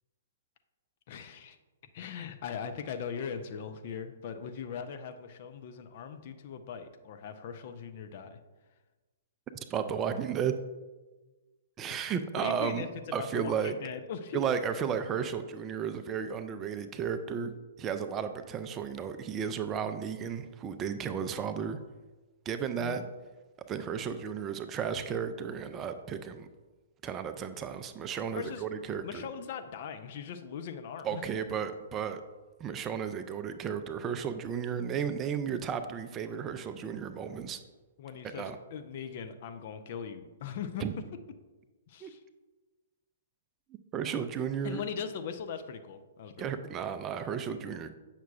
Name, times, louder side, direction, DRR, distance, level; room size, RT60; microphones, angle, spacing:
voice 1, 1.1-1.6 1.9-8.4 11.9-12.0 12.4-12.9 13.2-14.4 22.8-23.1 28.3-28.6 29.0-31.2 38.0-40.8 41.9-42.2 44.6-46.5, left 7 dB, 45° left, 8 dB, 0.5 m, -40 dB
voice 2, 9.7-10.6 11.8-12.8 13.1-13.8 14.3-21.8 22.5-23.0 23.7-26.5 27.0-29.2 31.0-32.2 32.6-37.6 38.3-38.6 40.8-41.0 42.0-42.1 43.9-44.8 46.4-48.0, right 7 dB, 20° right, 9 dB, 0.4 m, -33 dB
8.1 x 5.9 x 2.4 m, 1.2 s
figure-of-eight pair, 120°, 0 cm